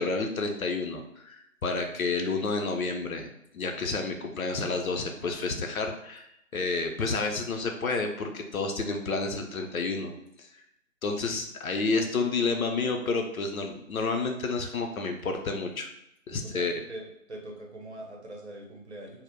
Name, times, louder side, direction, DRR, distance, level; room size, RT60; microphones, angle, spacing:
voice 1, 0.0-3.3 3.5-6.3 6.5-10.1 10.4-10.5 11.0-15.9 16.3-16.8, left 3 dB, 80° left, 4 dB, 0.6 m, -30 dB
voice 2, 16.4-19.2, right 1 dB, 55° right, 0 dB, 0.6 m, -42 dB
2.1 x 2.0 x 2.9 m, 0.80 s
figure-of-eight pair, 170°, 41 cm